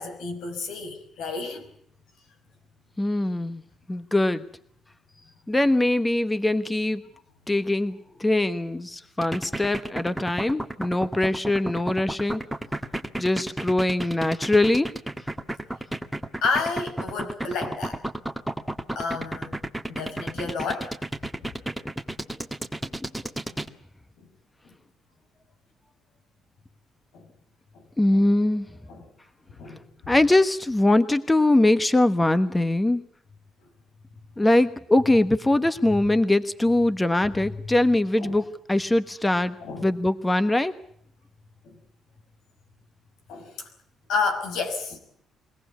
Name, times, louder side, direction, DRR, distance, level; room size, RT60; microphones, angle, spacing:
voice 1, 0.0-1.7 16.4-18.0 19.0-19.5 19.9-21.0 22.3-22.4 23.5-23.6 24.2-24.3 24.7-24.8 27.1-27.3 27.7-27.9 28.1-28.2 28.9-29.1 29.6-30.1 35.9-36.0 38.2-38.3 39.6-39.9 41.6-41.8 43.3-43.7 44.1-45.0, left 4 dB, 85° left, 5.5 m, -31 dB
voice 2, 3.0-3.6 3.9-4.4 5.5-7.0 7.5-12.4 13.2-14.9 23.0-23.1 28.0-28.7 30.1-33.0 34.4-39.5 39.8-40.7, left 1 dB, 15° left, 1.2 m, -22 dB
sound 1, 9.2-23.7, right 1 dB, 5° right, 1.7 m, -32 dB
23.5 x 18.0 x 8.3 m
cardioid pair, 90°, 0 cm